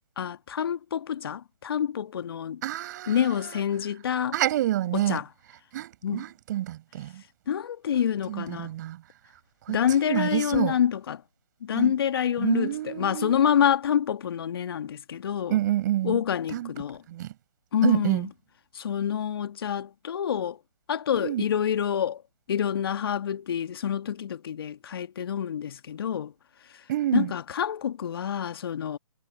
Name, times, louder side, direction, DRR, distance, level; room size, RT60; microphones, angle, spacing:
voice 1, 0.2-2.6 3.1-4.3 4.9-5.3 6.0-6.2 7.5-8.7 9.7-11.2 11.6-15.6 16.0-17.0 17.7-18.3 18.7-20.6 20.9-22.2 22.5-26.3 26.7-26.8 27.1-29.0, left 9 dB, 45° left, 1.6 m, -27 dB
voice 2, 2.6-3.6 4.3-5.2 5.7-7.2 8.3-9.0 9.7-10.7 11.7-11.9 12.4-13.4 15.5-16.2 16.5-16.7 17.1-17.3 17.8-18.3 21.2-21.4 26.9-27.3, right 13 dB, 35° right, 6.2 m, -28 dB
figure-of-eight pair, 145°, 17 cm